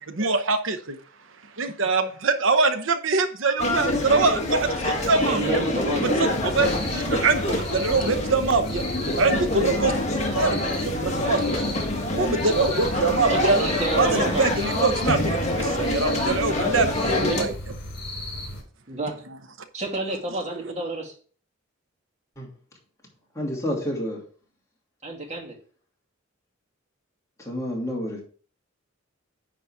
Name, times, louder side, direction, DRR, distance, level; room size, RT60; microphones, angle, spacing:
voice 1, 0.1-1.0 1.6-5.6 6.0-8.8 9.2-9.9 10.3-11.7 12.1-13.6 14.0-17.5 20.5-20.7, right 3 dB, 70° right, 9 dB, 0.9 m, -24 dB
sound 1, 3.6-17.4, left 1 dB, 35° left, 1.6 m, -26 dB
voice 2, 5.3-6.2 13.3-14.4 17.3-17.5 18.9-19.1 19.7-21.1 25.0-25.5, right 2 dB, 35° right, -1 dB, 2.6 m, -29 dB
sound 2, 6.3-18.6, left 1 dB, 60° left, 4.0 m, -36 dB
voice 3, 23.4-24.2 27.5-28.2, equal, 15° left, -2 dB, 2.8 m, -29 dB
10.0 x 4.2 x 4.8 m, 0.42 s
head